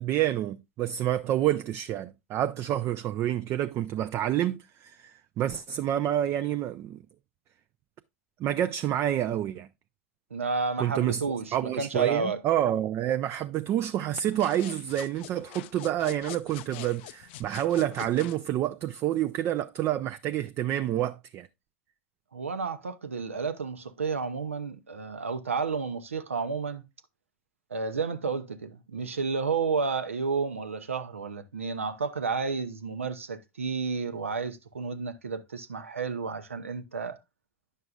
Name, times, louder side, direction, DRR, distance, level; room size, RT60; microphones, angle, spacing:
voice 1, 0.0-7.0 8.4-9.7 10.8-11.2 11.5-21.5, right 12 dB, 40° right, 0.4 m, -28 dB
voice 2, 10.3-12.4 22.3-26.8 27.7-37.2, right 4 dB, 85° right, 0.7 m, -31 dB
sound 1, 14.2-18.4, left 13 dB, 60° left, 0.5 m, -44 dB
9.7 x 6.5 x 2.4 m
hypercardioid pair, 90°, 7 cm